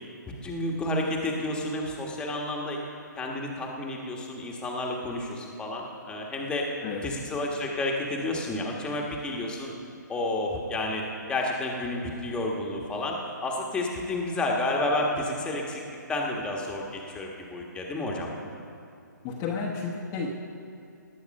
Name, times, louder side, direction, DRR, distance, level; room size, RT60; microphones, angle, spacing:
voice 1, 0.4-2.8 3.1-6.6 7.0-9.7 10.1-11.0 11.3-15.8 16.1-18.3, left 2 dB, 10° left, -1 dB, 1.4 m, -30 dB
voice 2, 19.2-20.3, left 5 dB, 25° left, -3 dB, 1.1 m, -32 dB
19.0 x 7.9 x 5.3 m, 2.5 s
hypercardioid pair, 145°, 10 cm